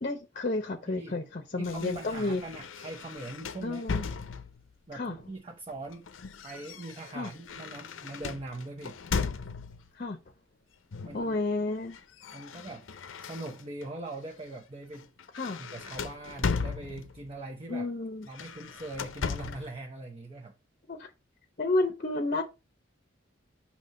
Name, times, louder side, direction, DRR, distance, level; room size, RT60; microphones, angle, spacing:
voice 1, 0.0-2.4 3.6-4.1 4.9-5.1 7.1-7.3 10.0-10.2 11.1-12.0 15.3-15.6 17.7-18.3 20.9-21.1 21.6-22.4, left 2 dB, 45° left, 0.7 m, -31 dB
voice 2, 0.9-1.2 1.6-3.8 4.9-6.1 6.4-9.0 11.0-11.4 12.3-12.9 13.2-15.1 15.6-17.9 18.2-20.5, right 2 dB, 30° right, 0.8 m, -41 dB
sound 1, 1.6-4.7 5.7-9.9 10.9-11.3 11.6-13.9 14.3-14.6 14.9-17.3 18.2-19.7, left 5 dB, 90° left, 0.6 m, -37 dB
6.0 x 3.0 x 5.2 m
head